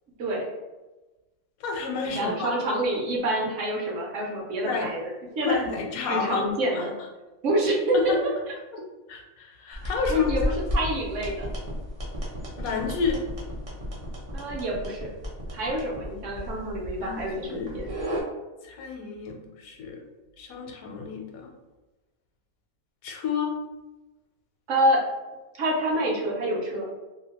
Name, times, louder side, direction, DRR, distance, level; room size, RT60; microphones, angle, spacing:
voice 1, 1.6-2.5 4.6-4.9 5.4-6.9 7.9-8.2 9.1-10.5 12.6-13.2 17.0-17.8 18.6-20.0 20.4-21.5 23.0-23.5, left 5 dB, 80° left, 2 dB, 1.0 m, -30 dB
voice 2, 2.2-5.6 6.1-6.9 7.4-8.1 10.1-10.4 10.7-11.5 14.3-15.1 15.5-17.9 24.7-25.0 25.6-26.9, right 1 dB, 65° right, -2 dB, 1.0 m, -27 dB
sound 1, 9.7-18.2, left 1 dB, 40° right, 0.5 m, -33 dB
2.7 x 2.2 x 2.8 m, 1.1 s
omnidirectional pair, 1.5 m